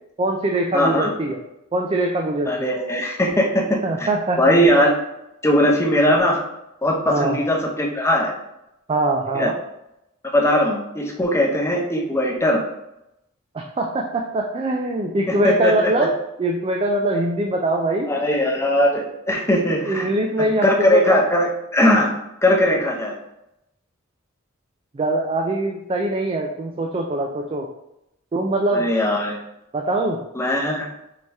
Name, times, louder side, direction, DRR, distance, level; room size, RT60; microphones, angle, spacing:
voice 1, 0.2-1.4 1.7-2.7 3.8-4.6 7.1-7.4 8.9-9.5 13.5-18.1 19.5-21.2 24.9-27.7 28.3-28.9 29.7-30.2, right 2 dB, 25° right, 2 dB, 0.3 m, -23 dB
voice 2, 0.7-1.1 2.5-4.1 4.4-4.9 5.4-6.4 6.8-8.3 9.3-9.5 10.3-12.6 15.3-15.9 18.1-20.1 20.6-22.1 22.4-23.1 28.7-29.4 30.4-30.9, left 1 dB, 10° left, -1 dB, 0.6 m, -19 dB
4.7 x 2.7 x 3.4 m, 0.86 s
head